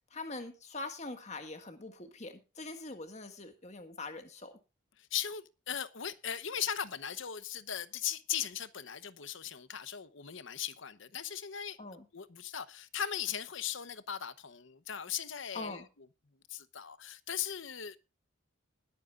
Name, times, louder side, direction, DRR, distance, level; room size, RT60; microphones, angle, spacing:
voice 1, 0.1-4.5 11.8-12.1 15.5-15.9, left 2 dB, 35° left, 1.8 m, -43 dB
voice 2, 5.1-11.8 12.1-15.8 16.5-18.0, left 9 dB, 65° left, 0.9 m, -38 dB
21.0 x 9.1 x 2.4 m
head